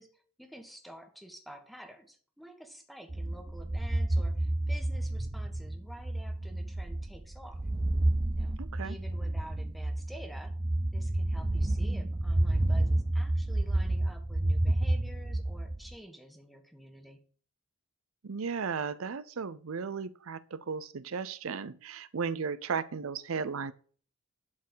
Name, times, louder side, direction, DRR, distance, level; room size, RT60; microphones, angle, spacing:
voice 1, 0.0-7.7 8.4-10.6 10.9-17.2, equal, ahead, 1.5 m, -50 dB
sound 1, 3.1-15.9, right 1 dB, 20° right, 0.5 m, -30 dB
voice 2, 8.6-9.0 18.2-23.7, right 5 dB, 70° right, 0.6 m, -35 dB
12.0 x 4.5 x 6.3 m
head